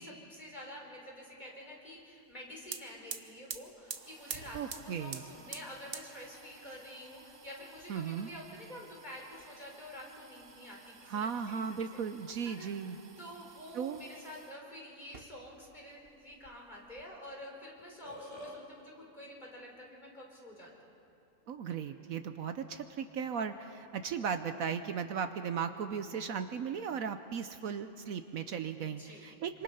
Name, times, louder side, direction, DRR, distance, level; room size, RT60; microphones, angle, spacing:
voice 1, 0.0-12.0 12.5-12.7 13.2-20.7 28.8-29.3, left 1 dB, 30° left, -2 dB, 4.5 m, -48 dB
sound 1, 2.3-2.4 2.6-14.6 15.0-15.8 16.0-17.0, right 6 dB, 40° right, 1.1 m, -49 dB
voice 2, 4.5-5.2 7.9-8.3 11.1-13.0 13.7-14.0 21.5-29.6, right 7 dB, 70° right, 9 dB, 1.1 m, -36 dB
Burping eructation, 17.8-18.6, left 1 dB, 45° left, 3.5 m, -46 dB
27.0 x 25.5 x 5.6 m, 2.8 s
omnidirectional pair, 1.6 m